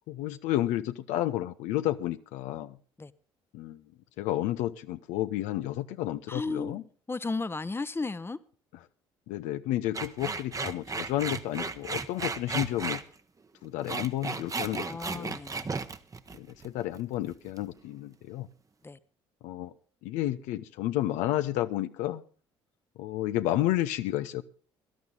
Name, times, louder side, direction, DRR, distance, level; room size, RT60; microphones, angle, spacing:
voice 1, 0.1-2.8 3.5-3.8 4.2-6.8 9.3-13.0 13.6-15.4 16.3-18.5 19.4-19.7 20.0-22.2 23.0-24.4, left 14 dB, 70° left, 0.6 m, -31 dB
voice 2, 6.3-8.4 14.7-15.7 18.8-19.0, left 3 dB, 20° left, 0.9 m, -35 dB
sound 1, 9.9-13.0 13.6-17.0 17.3-17.7, right 4 dB, 25° right, 1.1 m, -34 dB
18.0 x 12.0 x 3.9 m
hypercardioid pair, 55°, 13 cm